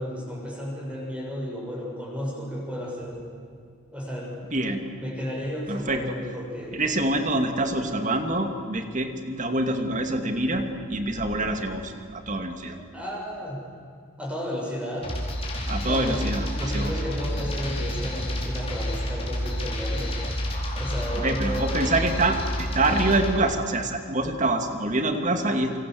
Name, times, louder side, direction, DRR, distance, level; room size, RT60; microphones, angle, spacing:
voice 1, 0.0-3.2 3.9-4.4 5.0-6.8 12.9-13.6 14.2-15.1 15.8-20.2 20.7-21.9, equal, 5° right, -3 dB, 7.0 m, -33 dB
voice 2, 4.5-4.9 5.7-6.0 6.7-12.8 15.7-16.9 21.2-25.8, right 2 dB, 35° right, 6 dB, 2.5 m, -26 dB
sound 1, 15.0-23.4, equal, 25° left, 4.7 m, -29 dB
28.0 x 26.0 x 7.9 m, 2.3 s
head